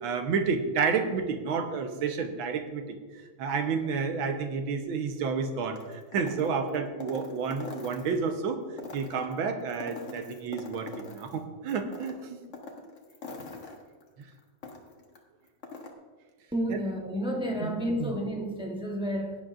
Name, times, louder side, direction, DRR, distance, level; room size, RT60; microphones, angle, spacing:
voice 1, 0.0-3.0 3.4-8.6 8.9-12.4 16.7-16.8 17.6-17.7 18.0-18.1, right 5 dB, 75° right, 6 dB, 1.7 m, -30 dB
sound 1, 5.7-8.3 8.7-11.4 11.7-15.2 15.5-15.9, left 3 dB, 40° left, 1.3 m, -43 dB
voice 2, 16.5-19.4, equal, 5° right, 0 dB, 0.5 m, -31 dB
17.0 x 10.0 x 2.5 m, 1.4 s
omnidirectional pair, 2.2 m